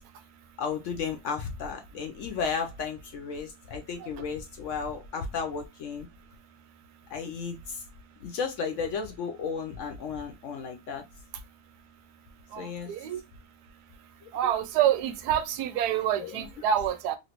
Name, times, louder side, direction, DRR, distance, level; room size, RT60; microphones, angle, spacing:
voice 1, 0.6-6.1 7.1-7.8 8.2-11.0 12.6-12.9 16.2-16.4, left 5 dB, 65° left, 0.8 m, -34 dB
voice 2, 12.5-13.2 14.3-17.2, right 10 dB, 85° right, 1.1 m, -27 dB
3.1 x 2.6 x 2.8 m
omnidirectional pair, 1.7 m